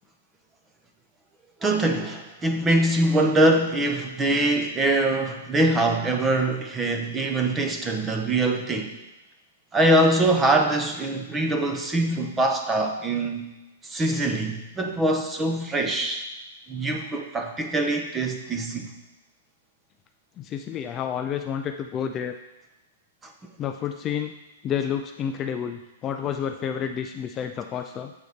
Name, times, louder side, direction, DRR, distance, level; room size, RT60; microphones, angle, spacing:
voice 1, 1.6-8.9 9.7-13.5 13.8-16.2 16.7-18.9 23.2-23.3, right 1 dB, 15° right, 4 dB, 0.8 m, -23 dB
voice 2, 20.4-22.4 23.6-24.3 24.6-28.1, left 8 dB, 25° left, 6 dB, 0.3 m, -30 dB
7.9 x 4.0 x 5.1 m, 1.0 s
hypercardioid pair, 145°, 0 cm